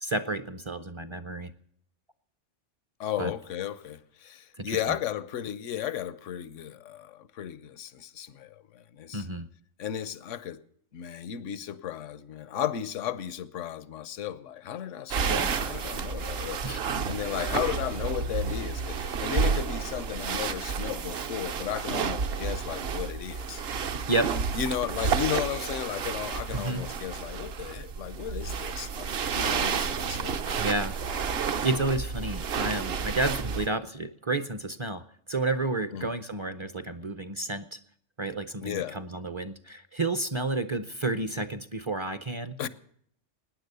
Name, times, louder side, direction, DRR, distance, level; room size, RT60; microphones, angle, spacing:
voice 1, 0.0-1.5 3.2-3.3 4.6-4.8 9.1-9.5 15.3-15.5 16.6-16.8 24.1-24.3 26.5-26.8 30.6-30.9 31.4-35.0 35.3-37.8 38.2-42.6, right 2 dB, 35° right, 0.5 m, -31 dB
voice 2, 3.0-9.3 9.8-10.6 10.9-16.6 17.0-23.6 24.5-30.6 35.9-36.1 38.6-39.0 42.6-42.7, left 10 dB, 90° left, 1.1 m, -34 dB
sound 1, 15.1-33.7, right 6 dB, 60° right, 0.9 m, -31 dB
17.5 x 9.9 x 6.7 m
omnidirectional pair, 1.2 m